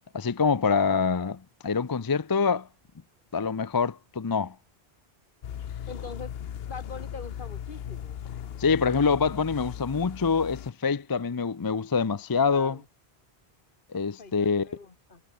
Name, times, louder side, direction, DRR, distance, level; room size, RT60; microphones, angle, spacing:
voice 1, 0.1-2.7 3.3-4.5 8.6-12.8 13.9-14.7, left 5 dB, 30° left, 0.4 m, -25 dB
sound 1, 5.4-10.7, left 9 dB, 75° left, 1.0 m, -38 dB
voice 2, 5.9-6.3 6.7-8.2 12.5-12.8 14.2-15.2, left 4 dB, 55° left, 2.4 m, -43 dB
omnidirectional pair, 1.0 m